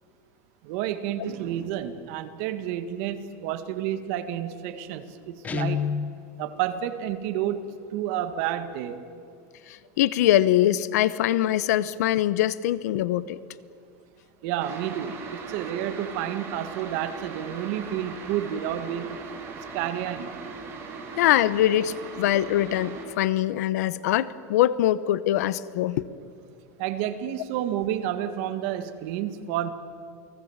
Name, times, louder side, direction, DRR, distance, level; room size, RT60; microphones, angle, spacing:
voice 1, 0.6-5.9 6.4-9.0 14.4-19.2 19.7-20.4 26.8-29.7, right 11 dB, 55° right, 9 dB, 1.9 m, -30 dB
Guitar, 5.4-6.2, left 6 dB, 20° left, 0.9 m, -28 dB
voice 2, 9.7-13.4 21.2-26.1, left 13 dB, 80° left, 17 dB, 1.0 m, -23 dB
sound 1, 14.6-23.0, right 4 dB, 30° right, 4.5 m, -39 dB
29.5 x 19.5 x 7.4 m, 2.3 s
supercardioid pair, 155°, 9 cm